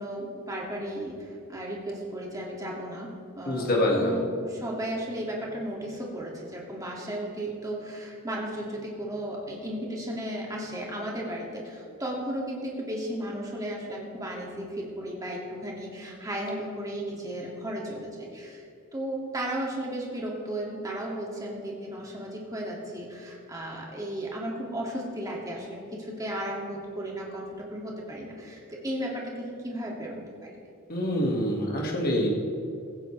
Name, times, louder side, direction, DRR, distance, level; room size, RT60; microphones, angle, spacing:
voice 1, 0.0-18.6 18.9-30.6, right 1 dB, 15° right, -3 dB, 2.3 m, -35 dB
voice 2, 3.5-4.2 30.9-32.3, left 1 dB, 45° left, -1 dB, 2.0 m, -25 dB
16.0 x 15.5 x 3.3 m, 2.5 s
head